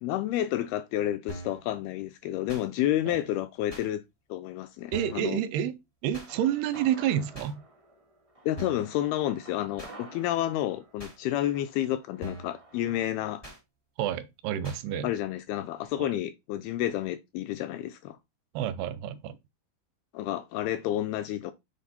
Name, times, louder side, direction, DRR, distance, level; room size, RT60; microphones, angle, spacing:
voice 1, 0.0-4.0 4.3-5.4 8.5-13.4 15.0-18.2 20.1-21.5, left 13 dB, 85° left, 2.3 m, -30 dB
sound 1, 1.3-1.6 2.5-2.7 3.7-3.9 4.9-5.3 6.1-6.3 7.3-7.5 8.6-8.9 9.8-9.9 11.0-11.2 12.2-12.6 13.4-13.6 14.6-14.8, equal, 60° left, 0.3 m, -41 dB
voice 2, 4.9-5.8 6.0-7.6 14.0-15.1 16.0-16.1 18.5-19.4, right 10 dB, 85° right, 2.6 m, -29 dB
sound 2, 6.1-13.0, right 2 dB, 65° right, 0.3 m, -51 dB
7.2 x 4.1 x 4.2 m
omnidirectional pair, 4.8 m